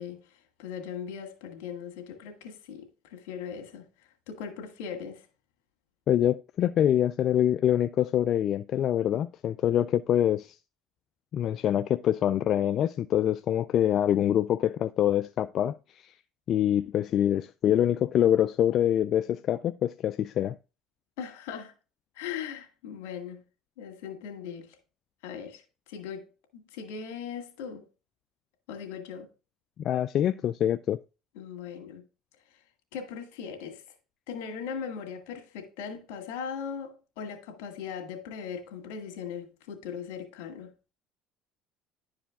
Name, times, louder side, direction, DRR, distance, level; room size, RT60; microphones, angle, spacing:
voice 1, 0.0-3.9 4.3-5.3 21.2-21.7 22.1-23.4 23.8-24.8 25.2-25.6 25.9-27.9 28.7-29.3 31.4-32.0 32.5-32.6 32.9-33.8 34.3-40.7, left 7 dB, 80° left, 2.0 m, -39 dB
voice 2, 6.1-10.6 11.3-16.1 16.5-20.6 29.8-31.0, left 10 dB, 55° left, 0.3 m, -25 dB
11.0 x 4.9 x 3.5 m
supercardioid pair, 90°, 0 cm